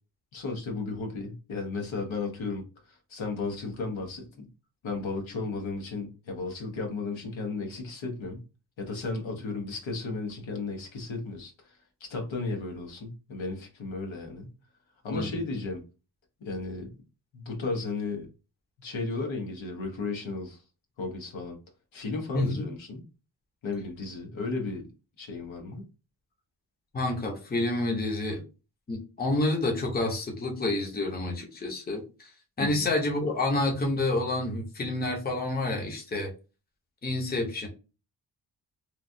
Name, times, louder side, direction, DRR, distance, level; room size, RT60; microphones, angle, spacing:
voice 1, 0.3-4.5 4.8-8.4 8.8-14.5 15.0-15.8 16.4-17.0 17.3-18.3 18.8-20.6 21.0-21.6 21.9-23.1 23.6-24.8 25.2-25.9 32.6-32.9, left 3 dB, 80° left, 2 dB, 1.0 m, -34 dB
voice 2, 22.3-22.7 26.9-28.4 28.9-32.3 32.6-36.3 37.0-37.7, left 2 dB, 20° left, 1 dB, 0.7 m, -29 dB
3.1 x 2.3 x 2.6 m, 0.31 s
wide cardioid pair, 150°, 46 cm